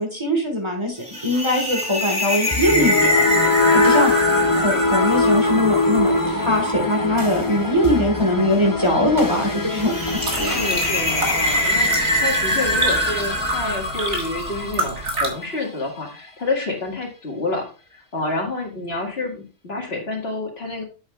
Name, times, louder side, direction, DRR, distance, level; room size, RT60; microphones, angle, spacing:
voice 1, 0.0-3.3 3.7-4.1 4.6-10.1 10.4-10.6, left 1 dB, 20° right, 1 dB, 1.6 m, -21 dB
sound 1, 1.0-15.3, equal, 5° right, 3.3 m, -25 dB
sound 2, 2.5-14.8, left 3 dB, 20° left, 0.6 m, -23 dB
voice 2, 3.3-4.2 10.4-17.7 17.9-20.8, left 2 dB, 50° left, 1 dB, 2.0 m, -28 dB
sound 3, 10.0-15.3, right 2 dB, 60° right, 2.2 m, -30 dB
8.7 x 7.8 x 2.4 m, 0.34 s
omnidirectional pair, 1.3 m